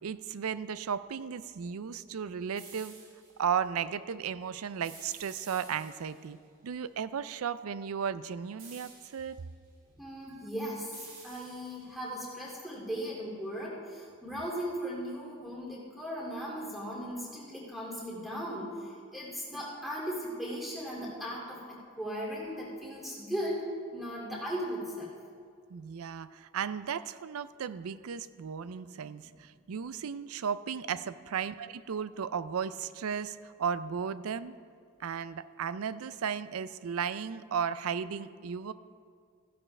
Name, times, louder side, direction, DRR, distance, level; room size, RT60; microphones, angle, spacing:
voice 1, 0.0-2.9 3.4-6.4 6.6-9.4 10.4-10.5 25.7-34.5 35.0-38.7, right 7 dB, 90° right, 15 dB, 0.4 m, -35 dB
sound 1, 2.5-3.3 4.8-6.3 8.6-9.4 10.9-12.0, right 4 dB, 65° right, 3.0 m, -51 dB
voice 2, 10.0-25.1, equal, ahead, -5 dB, 2.3 m, -37 dB
14.5 x 11.0 x 3.3 m, 2.2 s
head